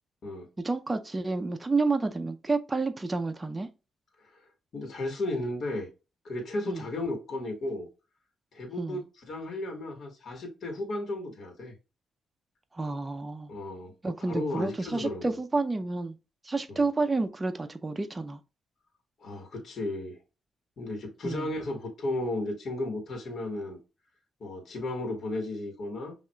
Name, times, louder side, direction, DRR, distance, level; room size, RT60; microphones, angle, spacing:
voice 1, 0.6-3.7 6.7-6.8 8.8-9.0 12.7-13.5 14.0-16.2 16.4-18.4 21.2-21.5, right 3 dB, 20° right, 0.4 m, -30 dB
voice 2, 4.7-5.9 6.2-7.9 8.5-11.7 13.5-13.9 14.2-15.4 16.7-16.8 19.2-20.2 20.8-23.8 24.4-26.1, left 2 dB, 60° left, 1.3 m, -34 dB
5.7 x 2.4 x 2.2 m
cardioid pair, 85°, 0 cm